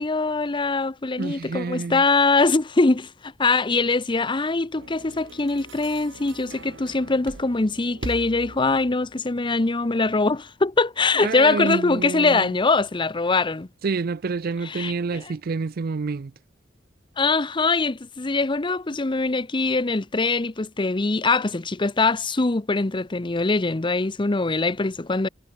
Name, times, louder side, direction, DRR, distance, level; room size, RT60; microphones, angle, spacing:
voice 1, 0.0-13.7 14.7-14.9 17.2-25.3, left 3 dB, 25° left, 0.7 m, -22 dB
voice 2, 1.2-2.0 11.2-12.5 13.8-16.3, right 4 dB, 50° right, 0.5 m, -28 dB
sound 1, 4.8-9.2, right 2 dB, 70° right, 1.4 m, -41 dB
head